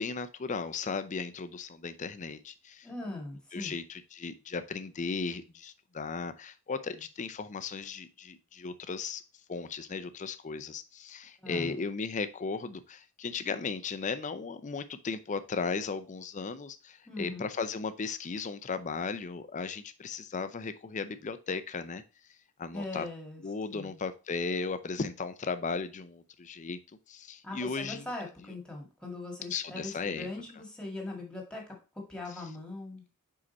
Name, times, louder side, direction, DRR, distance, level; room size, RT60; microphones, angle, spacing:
voice 1, 0.0-2.9 3.5-9.2 9.5-22.0 22.6-23.1 23.4-26.8 27.1-28.1 29.5-30.3, left 4 dB, 35° left, 11 dB, 0.5 m, -36 dB
voice 2, 2.8-3.7 11.4-11.8 17.1-17.5 22.7-23.4 23.7-24.0 27.4-31.6 32.1-33.0, left 2 dB, 5° left, 0 dB, 1.8 m, -40 dB
5.1 x 4.8 x 4.1 m, 0.32 s
head